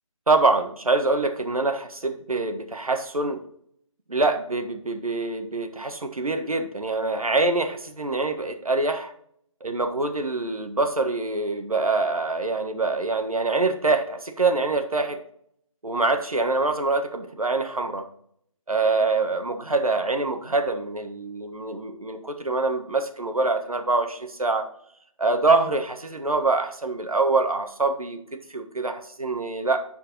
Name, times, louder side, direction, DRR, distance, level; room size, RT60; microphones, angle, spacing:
voice 1, 0.3-3.4 4.1-9.1 9.6-15.2 15.8-18.1 18.7-24.7 25.2-29.8, right 3 dB, 85° right, 7 dB, 1.4 m, -25 dB
9.8 x 4.6 x 3.9 m, 0.67 s
figure-of-eight pair, 155°, 18 cm